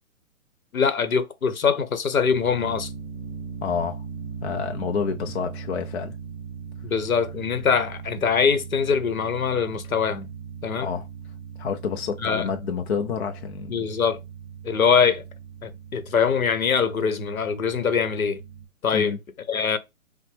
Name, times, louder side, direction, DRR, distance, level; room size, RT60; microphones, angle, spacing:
voice 1, 0.7-2.9 6.8-10.3 10.6-10.9 12.2-12.5 13.7-14.2 14.6-15.3 15.6-18.4 18.8-19.2 19.5-19.8, left 6 dB, 80° left, 0.9 m, -23 dB
sound 1, 2.2-18.7, right 6 dB, 5° right, 0.5 m, -39 dB
voice 2, 3.6-4.0 4.4-6.1 10.8-11.1 11.6-13.9 18.9-19.2, left 6 dB, 50° left, 0.5 m, -28 dB
5.5 x 2.1 x 3.3 m
hypercardioid pair, 135°, 42 cm